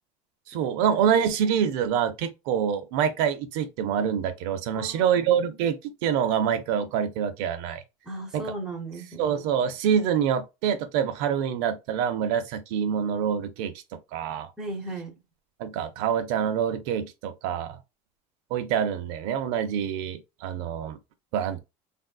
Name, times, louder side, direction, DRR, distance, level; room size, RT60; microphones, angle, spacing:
voice 1, 0.5-7.8 8.3-8.4 9.2-13.7 14.1-14.5 15.6-17.8 18.5-21.0 21.3-21.6, right 8 dB, 75° right, 0.5 m, -26 dB
voice 2, 4.7-5.6 8.0-9.3 14.6-15.1, right 2 dB, 5° right, 0.7 m, -37 dB
3.3 x 2.6 x 2.2 m
cardioid pair, 180°, 14 cm